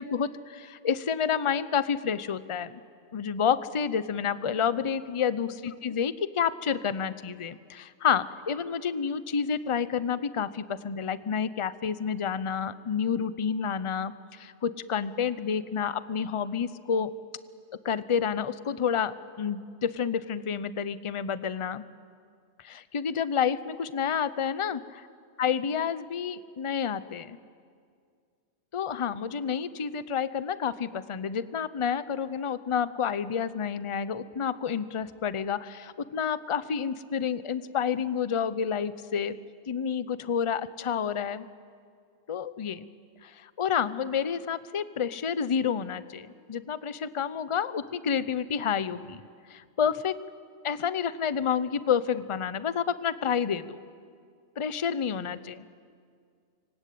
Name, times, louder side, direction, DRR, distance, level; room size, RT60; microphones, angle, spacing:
voice 1, 0.0-2.8 3.1-17.1 17.8-21.8 22.6-25.0 25.4-27.4 28.7-39.4 39.7-41.4 42.3-42.9 43.2-49.2 49.5-50.1 50.6-53.8 54.6-55.7, left 7 dB, 35° left, 15 dB, 0.7 m, -29 dB
26.0 x 25.0 x 8.6 m, 2.2 s
omnidirectional pair, 1.2 m